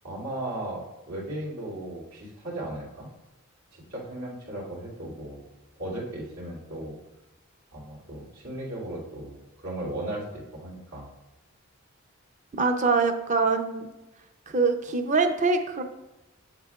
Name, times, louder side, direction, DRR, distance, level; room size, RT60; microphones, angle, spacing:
voice 1, 0.0-3.1 3.7-5.4 5.8-7.0 7.7-11.1, right 1 dB, 80° right, -6 dB, 2.5 m, -36 dB
voice 2, 12.5-13.9 14.5-15.8, right 4 dB, 35° right, 7 dB, 0.5 m, -24 dB
8.0 x 7.4 x 2.4 m, 1.0 s
head